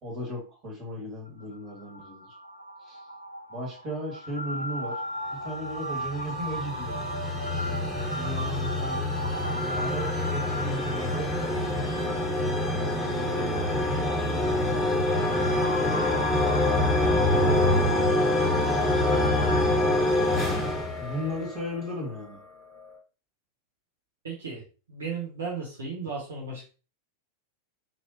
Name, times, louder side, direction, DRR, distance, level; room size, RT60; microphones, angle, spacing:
voice 1, 0.0-2.4 2.8-3.0 3.5-5.0 5.3-7.0 7.6-7.8 8.2-9.1 9.7-11.3 13.1-16.3 17.3-18.8 21.0-22.4, equal, 30° right, -1 dB, 1.9 m, -37 dB
sound 1, 1.3-19.6, equal, 85° left, 0.4 m, -37 dB
sound 2, 5.7-21.8, left 1 dB, ahead, 1.5 m, -26 dB
voice 2, 24.2-24.6 24.9-26.7, right 4 dB, 70° right, -3 dB, 1.1 m, -35 dB
4.6 x 3.0 x 2.8 m, 0.35 s
figure-of-eight pair, 90°, 0 cm